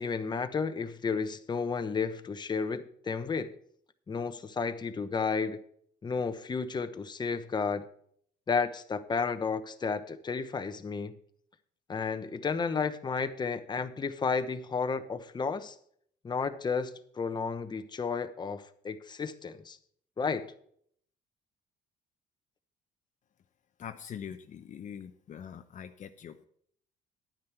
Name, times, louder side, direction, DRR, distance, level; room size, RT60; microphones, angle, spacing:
voice 1, 0.0-3.5 4.1-5.6 6.0-7.9 8.5-11.1 11.9-15.7 16.2-19.8 20.2-20.5, left 5 dB, 25° left, 9 dB, 1.0 m, -32 dB
voice 2, 23.8-26.5, left 8 dB, 45° left, 7 dB, 0.8 m, -43 dB
10.5 x 9.7 x 4.5 m, 0.63 s
cardioid pair, 110°, 17 cm